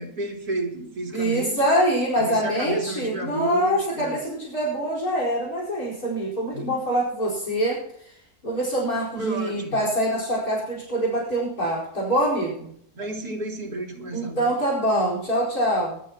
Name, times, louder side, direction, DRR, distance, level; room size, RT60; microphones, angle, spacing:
voice 1, 0.0-1.6 2.2-4.2 6.5-6.8 9.2-9.8 13.0-14.6, right 2 dB, 90° right, 0 dB, 3.7 m, -31 dB
voice 2, 1.1-7.8 8.4-12.7 14.1-16.0, right 1 dB, 70° left, -3 dB, 5.2 m, -24 dB
20.5 x 12.5 x 3.0 m, 0.66 s
omnidirectional pair, 1.6 m